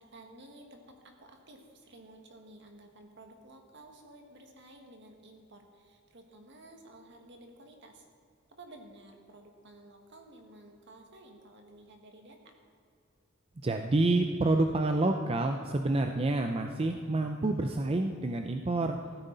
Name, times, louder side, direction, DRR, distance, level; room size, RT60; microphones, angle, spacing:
voice 1, 0.0-8.1 8.5-12.5, right 1 dB, 60° right, 3 dB, 1.7 m, -53 dB
voice 2, 13.6-19.0, right 2 dB, 30° right, 5 dB, 0.5 m, -28 dB
15.0 x 13.0 x 4.0 m, 2.3 s
head